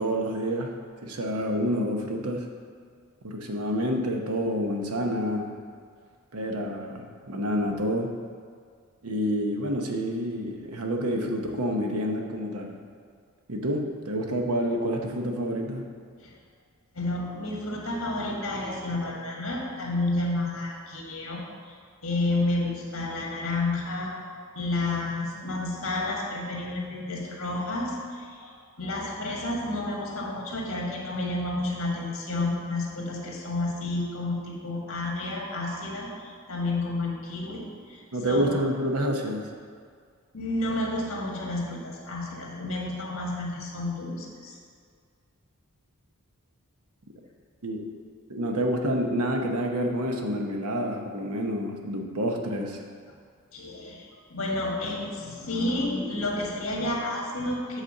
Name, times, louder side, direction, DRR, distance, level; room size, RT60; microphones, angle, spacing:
voice 1, 0.0-2.5 3.2-5.5 6.3-8.2 9.0-12.8 13.5-15.8 38.1-39.5 47.6-47.8 48.3-52.8, equal, 85° right, 2 dB, 0.9 m, -28 dB
voice 2, 16.9-21.8 22.0-24.2 24.5-28.5 28.8-38.5 40.3-44.6 53.5-57.8, left 2 dB, 65° left, -2 dB, 1.7 m, -30 dB
8.2 x 4.2 x 6.5 m, 2.1 s
head